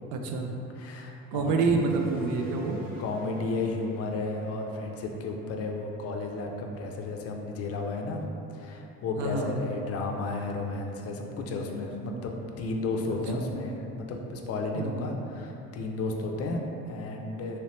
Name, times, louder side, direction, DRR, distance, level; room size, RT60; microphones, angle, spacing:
voice 1, 0.1-0.5 1.3-2.8 9.2-9.6 13.1-13.4 14.7-15.0, right 4 dB, 80° right, 3 dB, 0.5 m, -28 dB
voice 2, 0.8-1.8 3.0-8.2 8.5-17.6, left 2 dB, 50° left, 2 dB, 0.5 m, -33 dB
sound 1, 1.8-7.0, right 1 dB, 5° right, 1.0 m, -48 dB
3.1 x 3.0 x 2.9 m, 2.8 s
cardioid pair, 100°, 30 cm